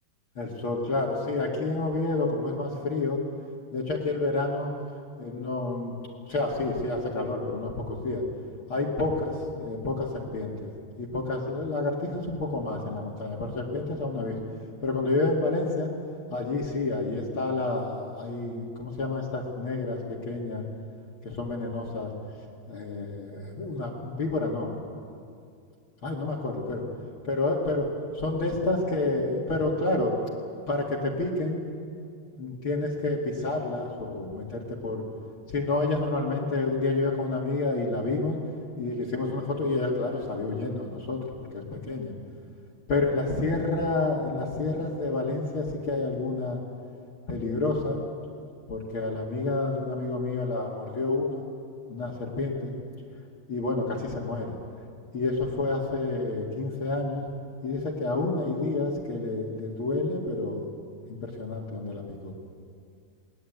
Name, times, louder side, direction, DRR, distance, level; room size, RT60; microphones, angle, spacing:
voice 1, 0.3-3.2 3.7-4.7 5.2-5.9 6.3-8.2 8.7-14.4 14.8-15.9 16.3-20.6 21.2-22.1 22.7-24.7 26.0-26.8 27.2-30.2 30.7-31.7 32.3-35.0 35.5-38.4 38.8-42.1 42.9-46.6 47.3-48.0 48.7-51.4 51.9-52.7 53.5-54.5 55.1-57.2 57.6-60.6 61.1-62.3, left 2 dB, 90° left, -3 dB, 1.1 m, -29 dB
20.0 x 19.5 x 9.3 m, 2.3 s
omnidirectional pair, 5.9 m